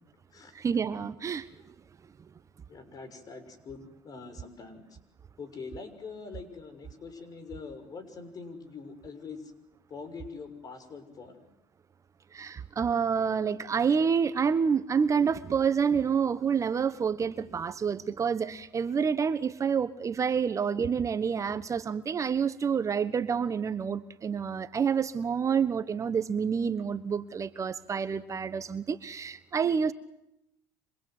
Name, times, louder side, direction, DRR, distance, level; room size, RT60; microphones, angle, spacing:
voice 1, 0.5-1.7 12.3-29.9, right 6 dB, 35° right, 13 dB, 1.2 m, -28 dB
voice 2, 2.7-4.9 5.4-9.5 9.9-11.4, left 4 dB, 40° left, 11 dB, 6.4 m, -44 dB
29.0 x 26.0 x 8.0 m, 0.84 s
supercardioid pair, 80°, 10 cm